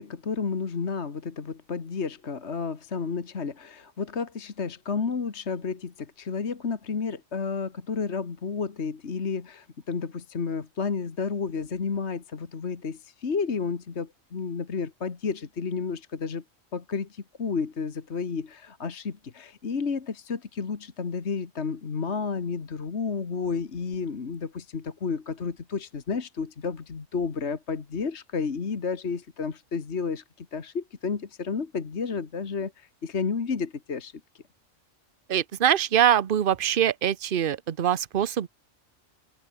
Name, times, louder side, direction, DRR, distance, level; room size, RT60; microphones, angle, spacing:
voice 1, 0.0-16.4 16.7-34.4, left 5 dB, 55° left, 1.9 m, -31 dB
voice 2, 35.3-38.5, right 10 dB, 45° right, 0.9 m, -23 dB
omnidirectional pair, 1.4 m